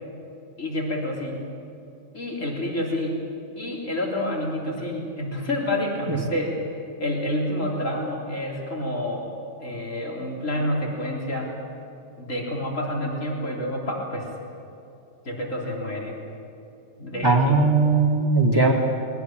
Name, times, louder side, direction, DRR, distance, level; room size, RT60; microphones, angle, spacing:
voice 1, 0.6-1.4 2.1-3.2 3.5-6.7 7.0-9.3 9.6-11.5 12.2-14.3 15.2-16.2 17.0-17.6 18.5-18.7, left 1 dB, 90° left, -2 dB, 4.0 m, -28 dB
voice 2, 17.2-18.7, right 3 dB, 20° right, 3 dB, 2.1 m, -19 dB
21.5 x 19.5 x 9.0 m, 2.7 s
omnidirectional pair, 1.3 m